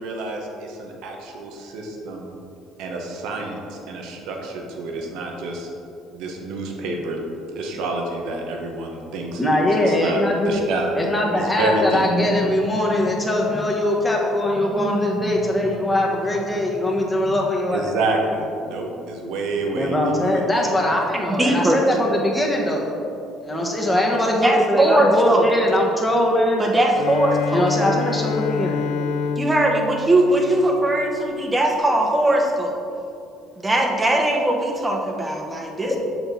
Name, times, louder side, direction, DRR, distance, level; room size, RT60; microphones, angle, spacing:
voice 1, 0.0-2.3 2.8-5.7 6.1-7.2 7.5-10.2 10.4-11.1 11.3-12.0 17.7-20.0 20.2-20.7, right 2 dB, 80° right, 1 dB, 1.1 m, -28 dB
voice 2, 9.4-10.6 10.9-17.9 19.7-22.9 23.4-26.6 27.5-28.8 35.9-36.0, left 1 dB, 10° left, -2 dB, 1.2 m, -21 dB
voice 3, 21.3-21.8 24.3-25.5 26.6-27.7 29.4-32.7 33.6-36.0, right 1 dB, 15° right, 1 dB, 1.1 m, -20 dB
Bowed string instrument, 26.9-31.2, left 6 dB, 80° left, 0.4 m, -28 dB
6.6 x 6.0 x 4.2 m, 2.6 s
cardioid pair, 110°, 0 cm